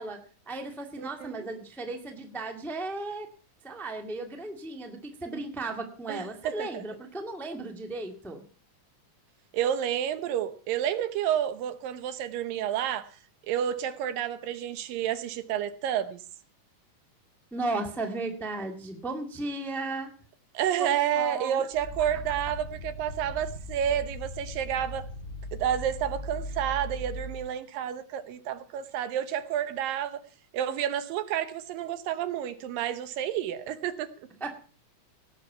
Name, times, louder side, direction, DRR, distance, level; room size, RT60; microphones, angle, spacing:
voice 1, 0.0-3.3 3.6-8.4 17.5-20.1 20.8-21.6 34.4-34.5, right 2 dB, ahead, 4 dB, 0.8 m, -35 dB
voice 2, 1.0-1.5 6.1-6.8 9.5-13.2 13.5-16.2 20.5-25.1 25.5-30.2 30.5-34.3, right 10 dB, 85° right, 12 dB, 2.7 m, -30 dB
sound 1, 21.7-27.5, left 1 dB, 20° left, 2.6 m, -39 dB
18.0 x 7.5 x 5.7 m, 0.40 s
omnidirectional pair, 3.9 m